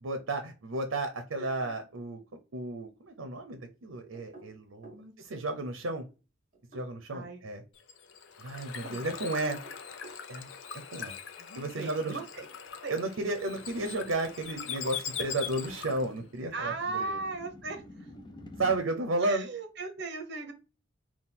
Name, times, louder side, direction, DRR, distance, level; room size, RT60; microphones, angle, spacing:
voice 1, 0.0-2.2 2.5-6.1 6.7-7.6 8.4-9.6 10.3-10.5 10.9-11.1 11.6-12.2 12.9-17.2 18.6-19.5, right 2 dB, 80° right, 6 dB, 0.7 m, -33 dB
voice 2, 1.4-1.8 4.9-5.4 7.1-7.4 8.6-9.1 11.4-12.5 12.8-13.0 16.5-17.8 19.2-20.5, right 3 dB, 55° right, 6 dB, 0.9 m, -38 dB
sound 1, 4.1-5.1 6.5-7.3 9.4-10.3, right 3 dB, 40° right, 1.3 m, -52 dB
Bird / Water, 7.8-16.2, left 7 dB, 70° left, 0.6 m, -41 dB
sound 2, 12.4-18.8, left 1 dB, 25° left, 0.6 m, -51 dB
3.7 x 2.3 x 4.1 m, 0.32 s
head